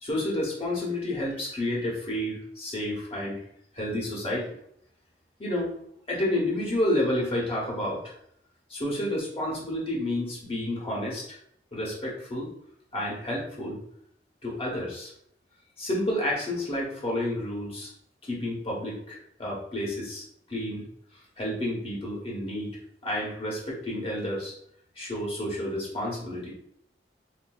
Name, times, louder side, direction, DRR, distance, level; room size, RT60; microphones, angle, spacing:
voice 1, 0.0-3.4 3.7-4.5 5.4-5.7 6.1-8.1 8.7-11.2 11.7-12.5 12.9-13.8 14.4-15.1 15.8-17.9 18.2-20.2 20.5-20.9 21.4-24.5 25.0-26.5, left 1 dB, 35° left, -4 dB, 1.0 m, -30 dB
3.5 x 2.6 x 2.3 m, 0.71 s
head